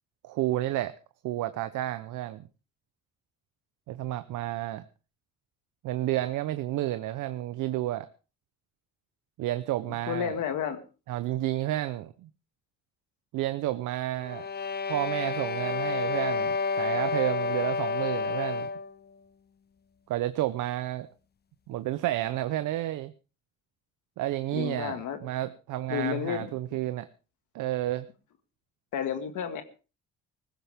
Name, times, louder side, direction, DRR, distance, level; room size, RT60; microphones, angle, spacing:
voice 1, 0.2-0.9 1.2-2.4 3.9-4.8 5.8-8.1 9.4-10.4 11.1-12.3 13.3-14.5 14.9-18.7 20.1-21.1 21.7-23.1 24.2-27.1 27.5-28.1, right 14 dB, 85° right, 12 dB, 0.8 m, -31 dB
voice 2, 9.9-10.8 24.5-25.2 25.9-26.5 28.9-29.6, left 9 dB, 80° left, 7 dB, 2.0 m, -31 dB
sound 1, 14.2-18.9, left 4 dB, 35° left, 0.8 m, -30 dB
18.5 x 15.5 x 3.5 m, 0.34 s
cardioid pair, 90°, 30 cm